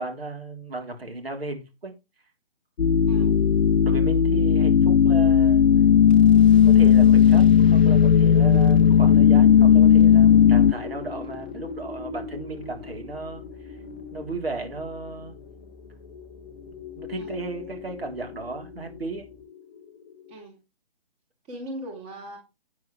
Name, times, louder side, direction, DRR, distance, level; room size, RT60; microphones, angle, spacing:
voice 1, 0.0-1.9 3.2-3.5 3.8-5.6 6.6-13.8 14.1-15.4 17.0-19.3, right 3 dB, 70° right, 3.7 m, -35 dB
sound 1, 2.8-10.7, left 8 dB, 75° left, 0.7 m, -16 dB
voice 2, 3.1-3.4 17.2-17.8 20.3-20.6 21.5-22.4, right 1 dB, 20° right, 3.0 m, -40 dB
sound 2, 6.0-20.3, left 5 dB, 25° left, 1.2 m, -36 dB
sound 3, 6.1-19.4, left 2 dB, 10° left, 0.4 m, -48 dB
11.0 x 9.3 x 3.3 m
figure-of-eight pair, 145°, 31 cm